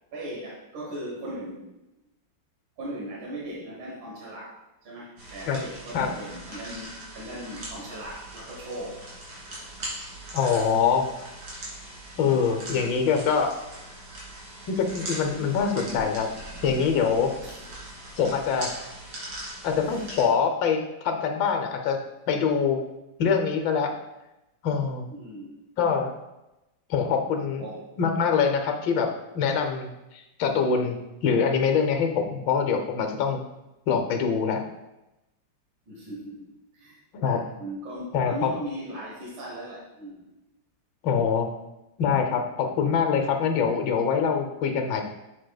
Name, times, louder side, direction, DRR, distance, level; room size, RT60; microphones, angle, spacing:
voice 1, 0.1-1.7 2.8-9.0 12.2-12.4 17.4-17.6 25.1-25.6 27.6-27.9 35.9-40.3, right 1 dB, 85° right, -3 dB, 2.0 m, -38 dB
sound 1, 5.2-20.2, right 1 dB, 65° right, 2.8 m, -40 dB
voice 2, 10.3-11.1 12.2-13.5 14.7-16.3 16.6-17.3 18.2-18.7 19.6-22.0 22.3-22.8 23.2-23.9 24.6-25.1 25.8-26.1 26.9-27.6 28.0-33.4 33.9-34.6 37.1-37.4 38.1-38.5 41.0-41.5 42.0-45.0, left 6 dB, 80° left, 5 dB, 1.5 m, -24 dB
7.7 x 6.9 x 2.3 m, 0.96 s
omnidirectional pair, 2.0 m